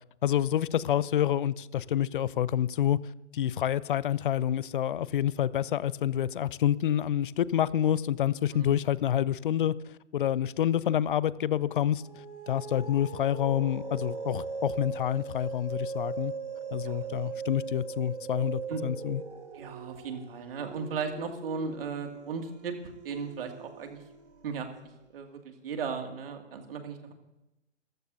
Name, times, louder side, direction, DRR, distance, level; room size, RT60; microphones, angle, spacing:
voice 1, 0.2-3.0 3.3-9.8 10.1-12.0 12.5-16.3 16.7-19.2, left 11 dB, 45° left, 0.6 m, -28 dB
sound 1, 11.9-24.7, right 5 dB, 70° right, 2.1 m, -40 dB
voice 2, 16.8-17.5 18.7-18.8 19.5-22.7 23.0-24.0 24.4-24.7 25.1-27.1, right 5 dB, 50° right, 2.4 m, -36 dB
27.5 x 14.5 x 2.7 m
figure-of-eight pair, 125°, 35 cm